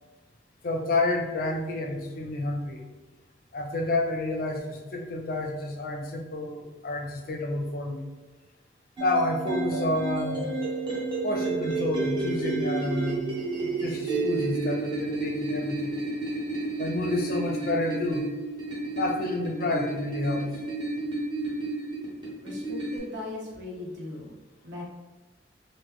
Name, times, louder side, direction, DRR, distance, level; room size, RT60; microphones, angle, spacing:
voice 1, 0.6-2.8 3.5-8.0 9.0-10.5 11.2-13.3 13.6-16.0 16.8-18.3 18.9-20.5, left 2 dB, 55° left, 2 dB, 0.5 m, -29 dB
sound 1, 9.0-23.0, right 3 dB, 25° right, 1.0 m, -31 dB
voice 2, 22.4-24.3 24.6-24.8, left 2 dB, 70° right, -4 dB, 0.9 m, -38 dB
3.0 x 2.1 x 3.5 m, 1.2 s
head